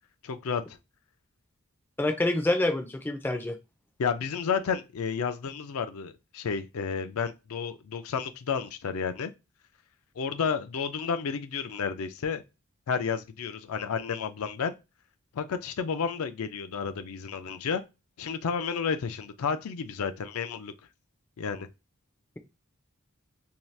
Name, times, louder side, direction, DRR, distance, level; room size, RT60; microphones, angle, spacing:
voice 1, 0.2-0.8 4.0-9.3 10.2-12.4 12.9-14.7 15.3-17.8 18.2-20.7 21.4-21.7, left 6 dB, 80° left, 0.4 m, -31 dB
voice 2, 2.0-3.6, left 2 dB, 10° left, 0.3 m, -27 dB
2.8 x 2.3 x 3.1 m
head